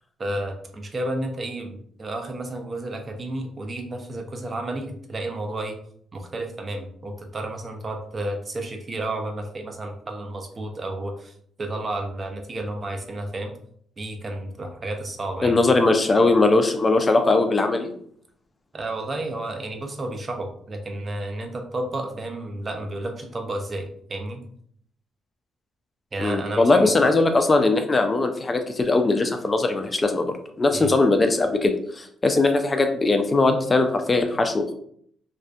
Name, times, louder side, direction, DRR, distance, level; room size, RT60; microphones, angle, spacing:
voice 1, 0.2-5.7 6.1-11.3 11.6-13.5 14.0-15.7 18.7-24.4 26.1-26.9 30.7-30.9, right 1 dB, 35° right, 3 dB, 0.5 m, -31 dB
voice 2, 15.4-17.9 26.2-34.7, left 2 dB, 25° left, 6 dB, 0.3 m, -20 dB
2.5 x 2.3 x 2.2 m, 0.64 s
cardioid pair, 90°, 0 cm